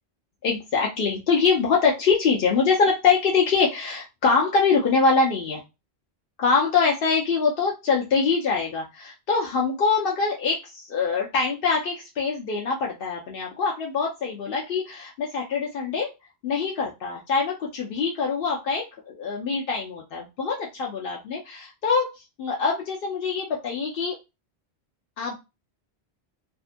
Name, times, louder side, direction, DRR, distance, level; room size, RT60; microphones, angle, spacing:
voice 1, 0.4-5.6 6.4-16.1 16.4-22.1 22.4-24.2 25.2-25.3, left 5 dB, 65° left, -1 dB, 0.7 m, -24 dB
2.7 x 2.4 x 2.5 m, 0.24 s
omnidirectional pair, 1.1 m